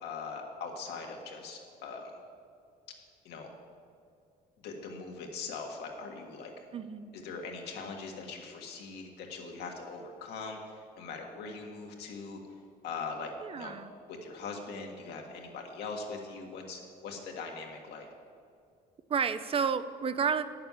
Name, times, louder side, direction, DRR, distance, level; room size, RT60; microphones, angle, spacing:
voice 1, 0.0-2.1 3.3-3.5 4.6-6.5 7.1-12.4 12.8-13.8 14.1-18.1, left 4 dB, 80° left, 1 dB, 1.7 m, -41 dB
voice 2, 6.7-7.1 13.4-13.9 19.1-20.4, right 6 dB, 35° right, 12 dB, 0.4 m, -31 dB
9.3 x 6.7 x 7.3 m, 2.3 s
cardioid pair, 110°, 17 cm